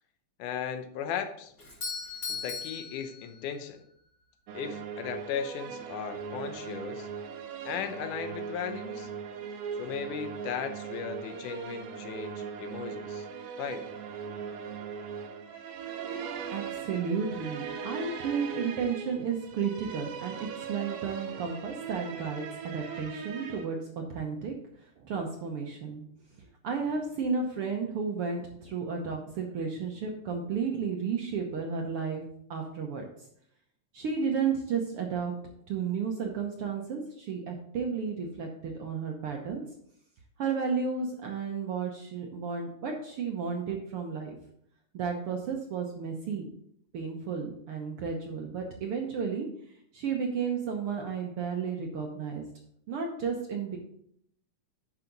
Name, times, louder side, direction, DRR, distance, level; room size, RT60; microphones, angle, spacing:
voice 1, 0.4-1.5 2.3-3.8 4.5-7.1 7.7-9.1 9.8-13.3 13.6-13.9, left 7 dB, 80° left, 7 dB, 2.3 m, -36 dB
Doorbell, 1.6-3.8, left 5 dB, 30° left, 2.0 m, -38 dB
sound 1, 4.5-23.7, right 6 dB, 80° right, 2.5 m, -39 dB
voice 2, 16.0-26.0 26.6-32.2 32.5-33.0 33.9-35.3 35.7-39.6 40.4-44.3 44.9-46.5 46.9-49.5 49.9-52.5 52.9-53.8, right 5 dB, 65° right, 2 dB, 1.4 m, -33 dB
9.8 x 5.9 x 3.9 m, 0.69 s
omnidirectional pair, 3.6 m